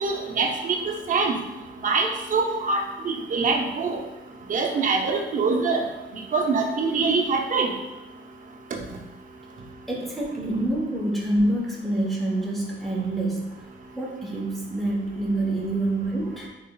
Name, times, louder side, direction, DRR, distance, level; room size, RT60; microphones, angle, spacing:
voice 1, 0.0-0.8 1.1-1.4 1.8-4.0 4.5-5.8 6.3-7.7, right 4 dB, 40° right, 2 dB, 0.6 m, -24 dB
voice 2, 9.9-16.5, right 1 dB, ahead, -4 dB, 0.9 m, -27 dB
3.6 x 3.4 x 2.3 m, 1.0 s
cardioid pair, 90°, 20 cm